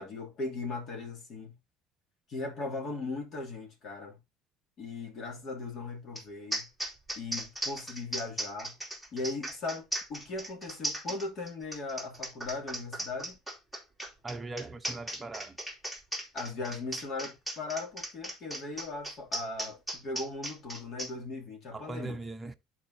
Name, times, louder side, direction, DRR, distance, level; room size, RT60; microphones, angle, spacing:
voice 1, 0.0-1.6 2.3-4.2 4.8-6.7 7.1-8.8 9.1-13.4 16.3-22.2, left 3 dB, 50° left, 2.9 m, -38 dB
sound 1, 6.2-6.3 6.5-21.1, right 1 dB, 5° left, 2.7 m, -37 dB
voice 2, 14.2-15.6 21.7-22.5, right 2 dB, 15° right, 0.9 m, -40 dB
12.0 x 4.5 x 2.8 m
cardioid pair, 115°, 0 cm